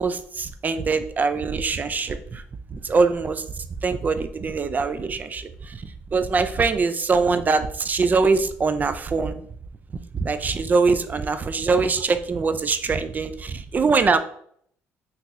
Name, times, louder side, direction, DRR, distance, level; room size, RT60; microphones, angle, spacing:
voice 1, 0.0-2.4 2.7-5.8 6.1-9.3 10.1-14.2, right 4 dB, 30° right, 10 dB, 0.3 m, -23 dB
3.7 x 2.8 x 2.4 m, 0.63 s
cardioid pair, 90°, 6 cm